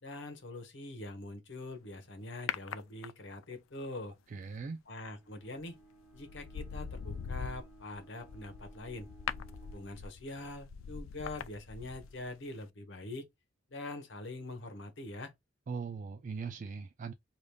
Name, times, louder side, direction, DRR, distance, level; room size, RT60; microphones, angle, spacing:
voice 1, 0.0-4.2 4.9-5.8 6.1-9.1 9.7-13.3 13.7-15.3, left 2 dB, 65° left, 1.1 m, -44 dB
sound 1, 2.5-3.5 5.4-5.7 6.1-12.3 12.6-12.7, left 7 dB, 85° left, 0.4 m, -42 dB
voice 2, 4.3-4.8 15.7-17.1, right 5 dB, 40° right, 0.3 m, -40 dB
Bowed string instrument, 5.2-10.1, right 2 dB, 5° right, 1.4 m, -58 dB
5.0 x 2.5 x 2.3 m
head